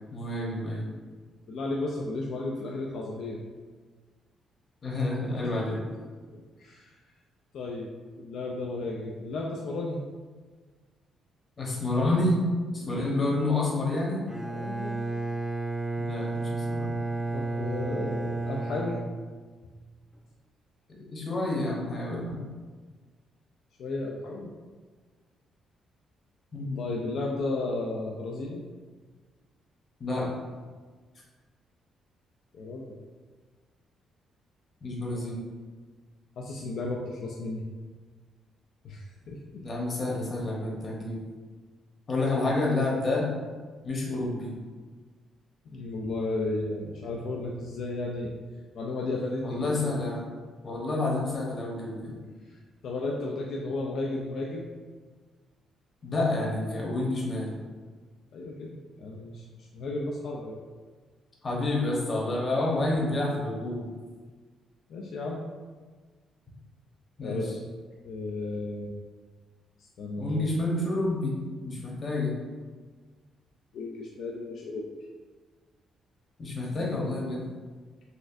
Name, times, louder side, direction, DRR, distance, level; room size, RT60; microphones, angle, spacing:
voice 1, 0.1-0.9 4.8-5.8 11.6-12.4 12.7-14.2 16.0-16.9 20.9-22.4 26.5-26.8 30.0-30.3 34.8-35.4 39.6-41.2 42.1-43.3 43.8-44.6 49.4-50.2 50.6-52.1 56.0-57.5 61.4-63.9 67.2-67.4 70.2-71.3 71.6-72.3 76.4-77.4, left 2 dB, 40° left, -3 dB, 1.0 m, -29 dB
voice 2, 1.5-3.4 6.3-6.9 7.5-10.0 12.8-13.4 14.5-15.0 17.3-19.0 23.8-24.5 26.8-28.6 32.5-33.0 35.1-35.3 36.4-37.6 38.8-39.4 45.7-48.3 48.7-49.7 52.4-52.6 52.8-54.7 58.3-60.6 64.9-65.4 67.2-67.6 68.0-68.9 69.8-70.4 73.7-74.9 76.7-77.0, left 2 dB, 70° left, -2 dB, 0.3 m, -34 dB
Bowed string instrument, 14.3-19.8, right 2 dB, 5° left, 0.6 m, -32 dB
4.1 x 2.4 x 2.5 m, 1.5 s
cardioid pair, 90°, 0 cm